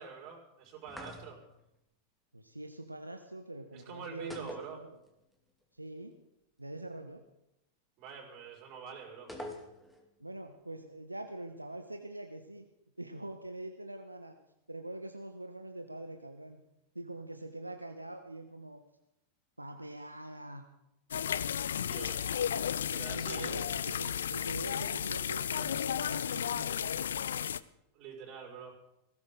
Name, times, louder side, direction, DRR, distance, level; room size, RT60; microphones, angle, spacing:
voice 1, 0.0-1.4 3.7-4.8 8.0-9.3 21.8-22.3 22.8-23.6 27.9-28.7, right 5 dB, 40° right, -1 dB, 5.5 m, -46 dB
sound 1, 0.9-1.6 4.3-5.4 5.6-5.7 9.3-10.1, left 1 dB, 5° left, 2.6 m, -45 dB
voice 2, 2.3-5.0 5.7-6.1 6.6-7.2 10.2-12.7 13.0-14.4 14.7-16.6 16.9-18.8 19.6-20.6 22.7-27.0, right 1 dB, 85° right, 6 dB, 1.1 m, -44 dB
sound 2, 21.1-27.6, left 9 dB, 65° left, 0.5 m, -33 dB
19.0 x 17.0 x 3.9 m, 0.85 s
figure-of-eight pair, 90°, 0 cm